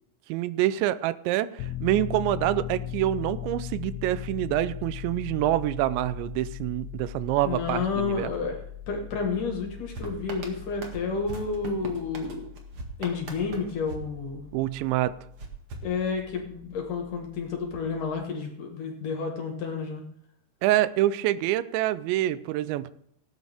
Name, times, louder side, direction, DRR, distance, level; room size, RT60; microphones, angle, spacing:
voice 1, 0.3-8.3 14.5-15.1 20.6-22.9, right 14 dB, 90° right, 15 dB, 2.9 m, -26 dB
Piano, 1.6-18.3, left 10 dB, 90° left, 2.9 m, -40 dB
voice 2, 7.4-8.6 8.9-12.5 13.0-14.5 15.8-20.0, left 5 dB, 60° left, 3 dB, 2.6 m, -30 dB
sound 1, 9.9-14.8 15.4-16.6, right 3 dB, 55° right, 1.5 m, -42 dB
18.5 x 9.4 x 3.5 m, 0.70 s
omnidirectional pair, 5.1 m